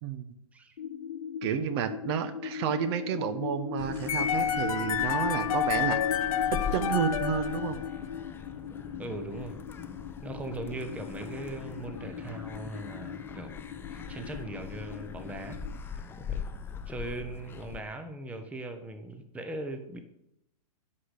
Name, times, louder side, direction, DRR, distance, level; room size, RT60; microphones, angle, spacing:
sound 1, 0.8-15.8, left 8 dB, 80° left, 0.8 m, -39 dB
voice 1, 1.4-6.0 6.5-7.8, right 9 dB, 45° right, 12 dB, 1.1 m, -31 dB
sound 2, 3.8-17.8, left 6 dB, 10° left, 0.6 m, -42 dB
sound 3, 4.1-8.2, left 8 dB, 65° left, 1.2 m, -30 dB
voice 2, 9.0-9.6 10.2-13.5 13.9-15.6 16.3-16.4 16.9-20.0, right 2 dB, 5° right, 7 dB, 0.9 m, -39 dB
11.0 x 5.0 x 8.2 m, 0.80 s
hypercardioid pair, 135°, 19 cm